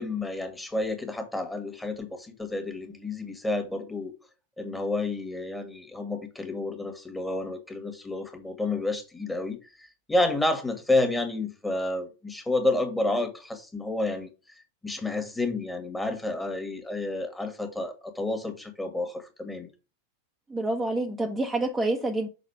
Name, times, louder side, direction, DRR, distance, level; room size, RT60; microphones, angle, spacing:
voice 1, 0.0-4.1 4.6-19.7, left 2 dB, 5° left, 1.8 m, -30 dB
voice 2, 20.5-22.3, right 2 dB, 10° right, 1.0 m, -27 dB
6.7 x 4.2 x 5.7 m
figure-of-eight pair, 90°, 0 cm